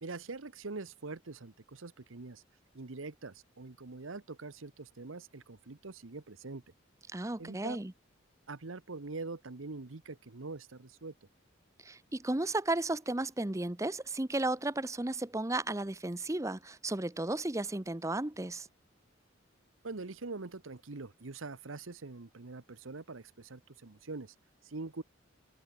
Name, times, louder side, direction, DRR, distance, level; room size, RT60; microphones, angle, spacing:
voice 1, 0.0-2.4 2.7-6.6 7.4-7.8 8.5-11.1 19.8-24.3 24.6-25.0, right 3 dB, 80° right, 1.0 m, -44 dB
voice 2, 7.1-7.9 11.8-18.7, right 2 dB, 15° right, 0.7 m, -34 dB
head